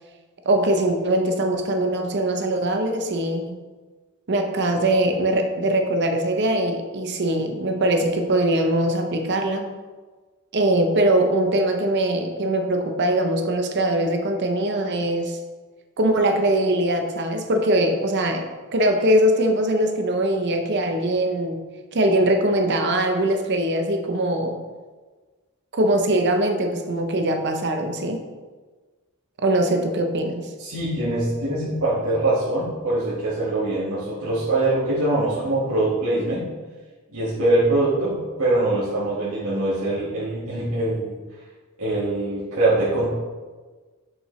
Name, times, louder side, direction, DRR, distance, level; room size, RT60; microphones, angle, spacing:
voice 1, 0.4-3.6 4.3-9.7 10.5-15.4 16.0-18.5 18.7-21.6 21.9-24.6 25.7-28.2 29.4-30.5, right 1 dB, 55° right, 5 dB, 0.7 m, -22 dB
voice 2, 30.6-36.5 37.1-41.1 41.8-43.1, right 2 dB, 85° right, -10 dB, 1.7 m, -23 dB
6.4 x 5.8 x 3.1 m, 1.4 s
head